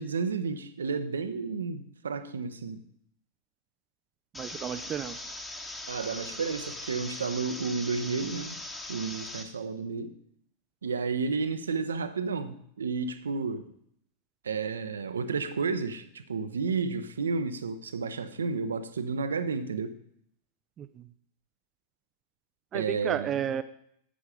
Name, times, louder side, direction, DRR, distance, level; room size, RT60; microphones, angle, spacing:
voice 1, 0.0-2.8 5.9-8.6 8.9-10.1 10.8-13.7 14.4-19.9 22.7-23.3, right 4 dB, 70° right, 0.8 m, -31 dB
sound 1, 4.3-9.4, left 2 dB, 10° left, 1.5 m, -40 dB
voice 2, 4.3-5.2 20.8-21.1 22.7-23.6, right 9 dB, 25° right, 0.5 m, -32 dB
10.5 x 8.3 x 5.0 m
figure-of-eight pair, 90°, 0 cm